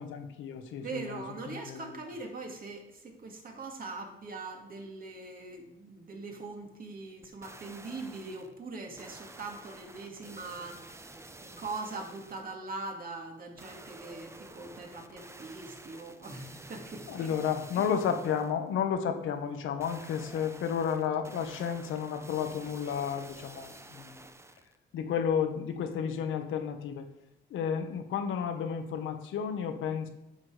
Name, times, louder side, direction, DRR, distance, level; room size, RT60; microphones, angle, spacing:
voice 1, 0.0-2.2 17.1-24.3 24.9-27.1 27.5-30.1, left 7 dB, 80° left, 6 dB, 1.2 m, -32 dB
voice 2, 0.8-10.8 11.4-17.1, right 3 dB, 45° right, 2 dB, 2.3 m, -41 dB
sound 1, 7.2-8.5 9.0-12.5 13.6-18.6 19.8-24.8 25.2-25.3, right 2 dB, 15° right, 0.8 m, -50 dB
9.4 x 6.1 x 5.0 m, 0.84 s
cardioid pair, 90°, 20 cm